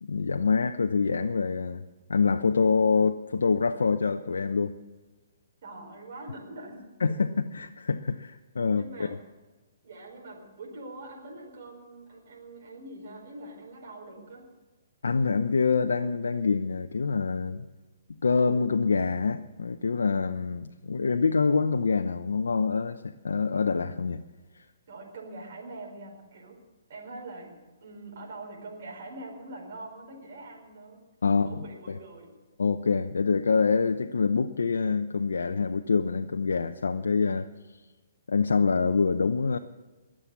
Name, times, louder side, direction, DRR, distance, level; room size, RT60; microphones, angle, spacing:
voice 1, 0.0-1.8 2.1-4.7 7.0-9.1 15.0-17.6 18.2-24.2 31.2-31.6 31.9-32.0 32.6-37.5 38.3-39.6, left 5 dB, 85° left, 0.7 m, -25 dB
voice 2, 5.6-6.8 8.7-9.2 9.8-14.5 24.9-26.6 26.9-32.3, right 2 dB, 55° right, 4.7 m, -44 dB
21.5 x 7.6 x 8.4 m
hypercardioid pair, 150°, 0 cm